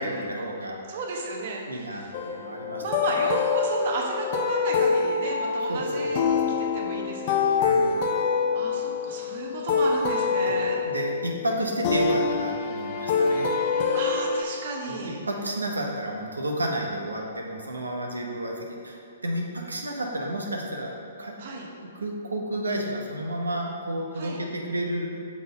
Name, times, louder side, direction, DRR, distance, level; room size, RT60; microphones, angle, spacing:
voice 1, 0.0-0.9 1.7-2.8 5.7-6.6 7.6-7.9 10.4-13.7 14.9-15.0 15.3-21.4 21.7-25.1, right 1 dB, 90° right, 0 dB, 1.0 m, -31 dB
voice 2, 0.9-2.1 2.8-7.5 7.9-8.0 8.5-10.8 13.9-15.2 21.4-21.7 24.1-24.4, right 3 dB, 55° right, -1 dB, 1.3 m, -33 dB
sound 1, 2.1-14.4, left 5 dB, 45° left, 0.5 m, -26 dB
6.0 x 4.1 x 5.4 m, 2.5 s
hypercardioid pair, 125°, 0 cm